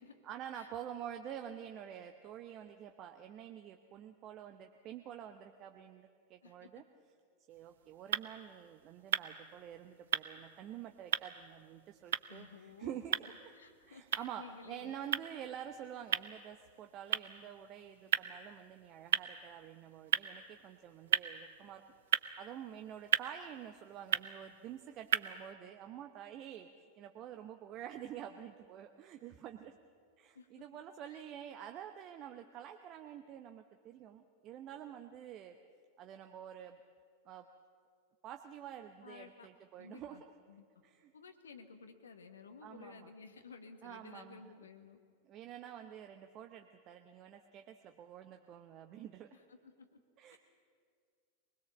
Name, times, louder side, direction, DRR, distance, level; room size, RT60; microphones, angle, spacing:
voice 1, 0.2-6.8 7.5-13.5 13.9-21.8 22.4-29.7 30.2-35.6 36.0-36.8 37.2-37.5 38.2-40.2 40.8-41.1 42.6-43.1 43.8-44.5 45.3-49.4 50.2-50.4, right 10 dB, 35° right, 6 dB, 0.9 m, -48 dB
sound 1, 7.5-25.5, right 10 dB, 60° right, 0.6 m, -39 dB
voice 2, 12.3-15.0 30.3-30.6 31.1-31.2 39.0-39.5 39.8-40.6 41.1-45.0 49.3-50.0 50.3-50.4, left 5 dB, 70° left, 7 dB, 1.5 m, -54 dB
23.5 x 20.0 x 7.3 m, 2.2 s
figure-of-eight pair, 90°, 0 cm